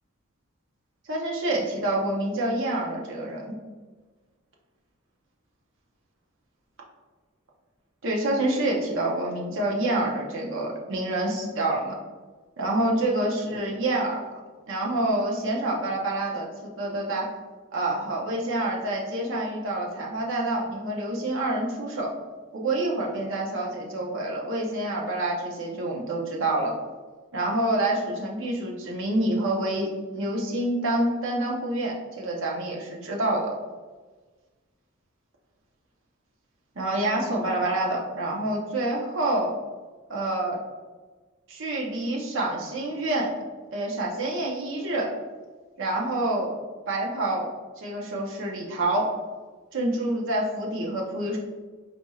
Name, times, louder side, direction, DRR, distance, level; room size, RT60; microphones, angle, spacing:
voice 1, 1.1-3.5 8.0-11.9 12.6-14.2 14.7-17.3 17.7-22.1 22.5-26.7 27.3-33.5 36.8-39.5 40.1-40.6 41.5-43.3 43.7-45.1 45.8-46.6 46.9-47.5 47.8-49.1 49.7-51.4, right 1 dB, 65° right, -1 dB, 0.7 m, -27 dB
4.3 x 4.2 x 2.3 m, 1.3 s
head